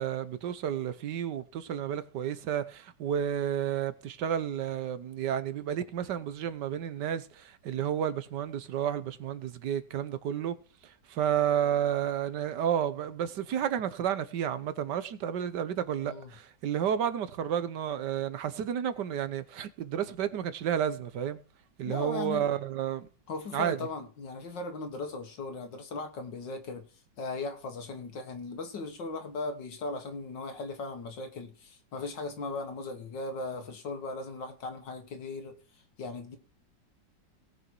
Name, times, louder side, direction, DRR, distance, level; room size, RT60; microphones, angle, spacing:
voice 1, 0.0-10.6 11.1-21.4 21.8-23.1 23.5-23.8, right 9 dB, 70° right, 1.5 m, -31 dB
voice 2, 21.9-22.5 23.3-26.9 27.2-35.6 36.0-36.4, left 3 dB, 70° left, 2.1 m, -38 dB
18.5 x 6.3 x 4.6 m
omnidirectional pair, 2.0 m